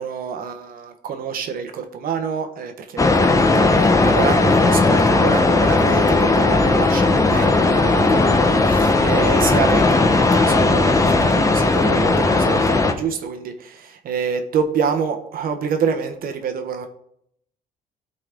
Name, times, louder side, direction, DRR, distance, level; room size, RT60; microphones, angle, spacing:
voice 1, 0.0-16.9, right 6 dB, 60° right, 6 dB, 1.1 m, -27 dB
sound 1, 3.0-12.9, left 3 dB, 20° left, 0.9 m, -16 dB
12.5 x 4.1 x 3.6 m, 0.73 s
cardioid pair, 110°, 17 cm